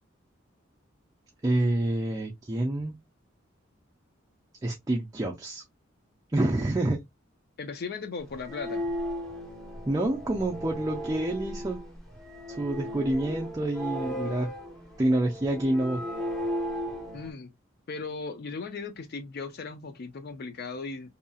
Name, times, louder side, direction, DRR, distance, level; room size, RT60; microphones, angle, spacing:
voice 1, 1.4-3.0 4.6-5.6 6.3-7.0 9.9-11.8 12.5-14.5 15.0-16.0, right 1 dB, 15° right, 0.4 m, -27 dB
voice 2, 7.6-8.9 17.1-17.5 17.9-21.1, left 4 dB, 50° left, 0.4 m, -37 dB
sound 1, 8.3-17.3, equal, ahead, 0.8 m, -36 dB
2.7 x 2.7 x 2.3 m
head